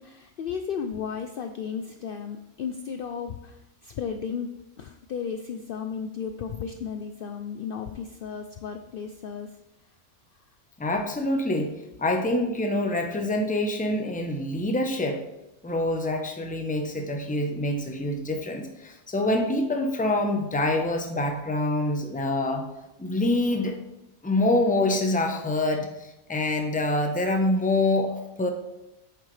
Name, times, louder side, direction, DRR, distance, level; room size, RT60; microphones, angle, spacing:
voice 1, 0.0-4.5 4.8-9.6, left 6 dB, 60° left, 6 dB, 0.6 m, -34 dB
voice 2, 10.8-11.7 12.0-15.2 15.6-22.7 23.0-23.8 24.2-28.5, left 1 dB, 10° left, 4 dB, 0.7 m, -26 dB
8.7 x 6.8 x 3.3 m, 0.94 s
omnidirectional pair, 1.3 m